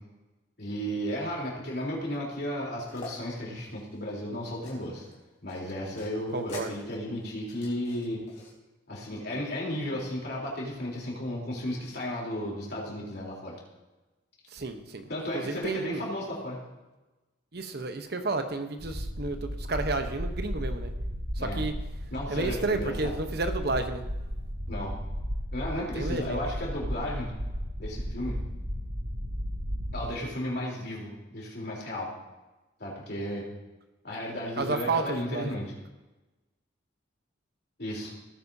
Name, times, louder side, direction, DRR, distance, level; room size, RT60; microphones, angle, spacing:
voice 1, 0.6-5.1 5.4-8.2 8.9-13.6 15.1-16.6 21.4-21.6 22.1-23.1 24.7-24.9 25.5-27.3 27.8-28.4 29.9-32.1 32.8-33.4 34.0-35.7 37.8-38.1, equal, 55° left, -4 dB, 3.7 m, -34 dB
sound 1, 2.9-3.1 3.6-5.2 5.5-8.5, left 3 dB, 35° left, 3.3 m, -47 dB
voice 2, 6.3-6.7 14.5-15.0 15.3-16.1 17.5-20.9 21.4-21.7 22.3-24.0 25.9-26.4 34.6-35.6, right 3 dB, 50° right, 7 dB, 1.0 m, -31 dB
sound 2, 18.8-30.1, equal, 70° right, 2.6 m, -34 dB
17.0 x 9.4 x 2.8 m, 1.1 s
head